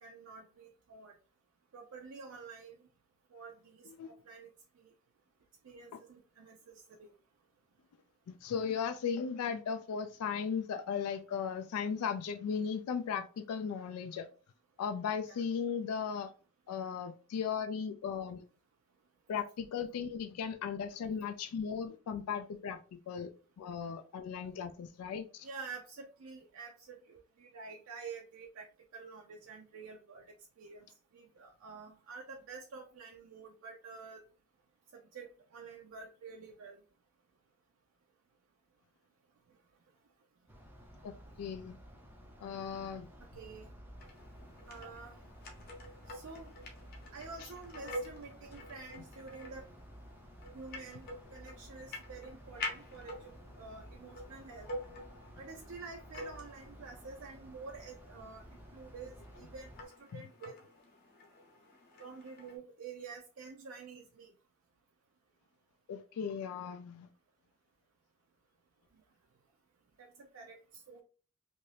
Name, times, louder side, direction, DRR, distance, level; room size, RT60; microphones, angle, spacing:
voice 1, 0.0-1.1 1.7-2.8 3.3-4.5 4.8-4.9 5.6-7.1 15.2-15.4 25.4-28.7 28.9-30.2 30.6-30.9 31.1-34.2 34.9-36.8 43.4-43.7 44.7-45.2 46.1-46.5 47.1-49.6 50.5-51.1 51.3-54.7 55.4-60.6 62.0-64.3 70.0-70.6 70.9-71.0, right 4 dB, 70° right, 0.4 m, -49 dB
voice 2, 8.3-14.3 14.8-16.3 16.7-18.4 19.3-23.3 23.6-25.5 41.0-41.8 42.4-43.1 60.1-60.2 65.9-67.1, left 6 dB, 85° left, 0.3 m, -37 dB
sound 1, 40.5-59.8, equal, 10° right, 0.4 m, -54 dB
sound 2, 44.0-62.6, left 1 dB, 45° left, 0.8 m, -48 dB
2.7 x 2.5 x 3.2 m
head